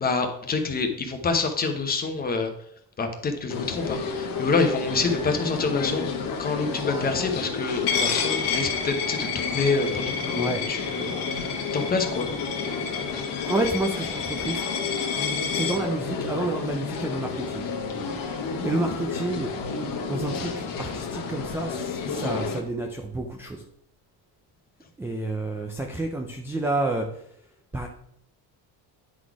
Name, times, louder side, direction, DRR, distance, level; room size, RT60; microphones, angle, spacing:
voice 1, 0.0-2.5 3.0-6.0 6.4-12.3, left 4 dB, 20° left, 5 dB, 0.9 m, -27 dB
sound 1, 3.5-22.6, left 5 dB, 55° left, 1.1 m, -31 dB
Coin (dropping), 7.9-15.8, left 6 dB, 75° left, 1.7 m, -30 dB
voice 2, 13.5-14.6 15.5-17.7 18.6-19.5 20.1-23.6 25.0-27.1 27.7-27.9, right 2 dB, 5° right, 3 dB, 0.3 m, -29 dB
9.7 x 4.1 x 4.7 m, 0.71 s
cardioid pair, 165°, 41 cm